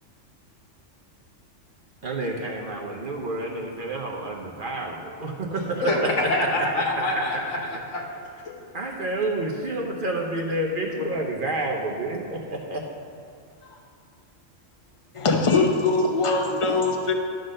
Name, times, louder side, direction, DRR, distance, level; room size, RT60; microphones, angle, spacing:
voice 1, 2.0-6.1 7.1-7.2 8.7-12.8, right 2 dB, 45° right, 0 dB, 0.9 m, -29 dB
voice 2, 5.5-8.1 8.4-8.6 11.0-11.1 13.6-13.8, left 2 dB, 70° left, 0 dB, 1.5 m, -27 dB
voice 3, 15.1-17.1, left 3 dB, 30° left, 2 dB, 0.8 m, -22 dB
11.5 x 3.9 x 6.5 m, 2.4 s
omnidirectional pair, 1.3 m